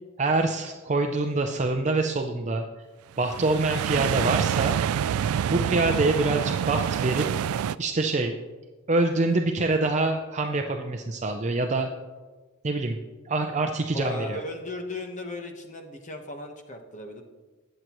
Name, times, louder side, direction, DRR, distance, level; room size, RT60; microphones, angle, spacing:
voice 1, 0.2-2.7 3.2-4.8 5.5-7.3 7.8-8.3 8.9-11.9 12.6-13.0 13.3-14.4, right 2 dB, 35° right, 4 dB, 0.6 m, -25 dB
sound 1, 3.2-7.8, right 8 dB, 85° right, 0.3 m, -27 dB
voice 2, 13.9-17.2, left 2 dB, 35° left, 5 dB, 1.2 m, -36 dB
20.0 x 7.7 x 3.1 m, 1.3 s
head